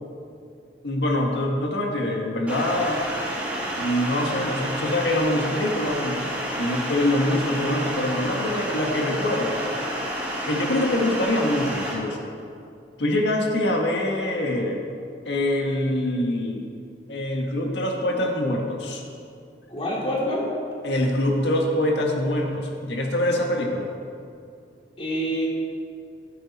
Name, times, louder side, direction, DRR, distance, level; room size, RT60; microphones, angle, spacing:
voice 1, 0.8-3.0 3.8-6.2 6.6-9.6 10.5-12.2 13.0-14.8 15.2-16.6 17.1-19.0 20.8-23.9, left 1 dB, 75° left, 0 dB, 1.7 m, -24 dB
sound 1, 2.5-11.9, right 1 dB, 10° right, 2.6 m, -30 dB
voice 2, 19.7-20.5 25.0-25.5, equal, 35° left, -4 dB, 2.8 m, -26 dB
12.5 x 12.0 x 4.3 m, 2.4 s
head